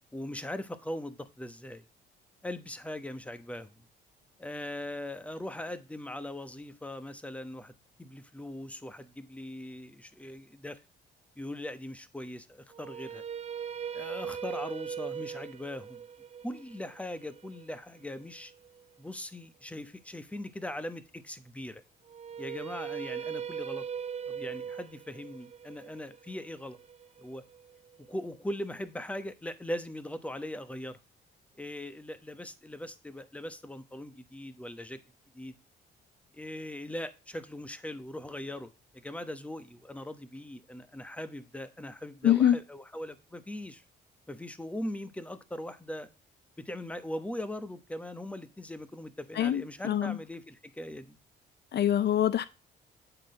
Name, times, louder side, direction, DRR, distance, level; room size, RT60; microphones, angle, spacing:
voice 1, 0.1-1.8 2.4-3.7 4.4-7.7 8.0-10.8 11.4-13.2 13.9-16.0 16.4-18.5 19.0-21.8 22.4-23.8 24.3-26.8 27.2-27.4 28.1-31.0 31.6-35.0 35.3-35.5 36.3-43.8 44.3-46.1 46.6-51.2, left 1 dB, 5° left, 1.0 m, -40 dB
sound 1, 12.7-18.8 22.1-28.1, right 7 dB, 35° right, 0.5 m, -40 dB
voice 2, 42.2-42.6 49.3-50.2 51.7-52.5, left 10 dB, 60° left, 0.5 m, -25 dB
8.9 x 4.0 x 6.3 m
cardioid pair, 90°, 20 cm